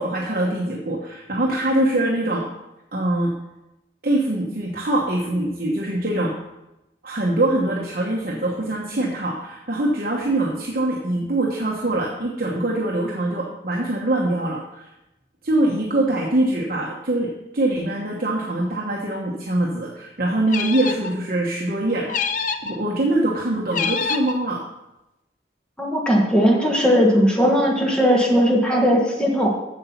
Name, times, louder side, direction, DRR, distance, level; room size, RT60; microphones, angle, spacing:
voice 1, 0.0-2.4 2.9-3.3 4.0-6.4 7.0-14.9 15.4-22.2 22.6-24.6, right 1 dB, 50° right, -2 dB, 1.1 m, -23 dB
sound 1, 20.5-21.1 22.1-22.8 23.7-24.4, left 5 dB, 45° left, 0.5 m, -26 dB
voice 2, 25.8-29.5, equal, 5° left, -2 dB, 1.4 m, -18 dB
8.2 x 7.0 x 5.8 m, 0.94 s
head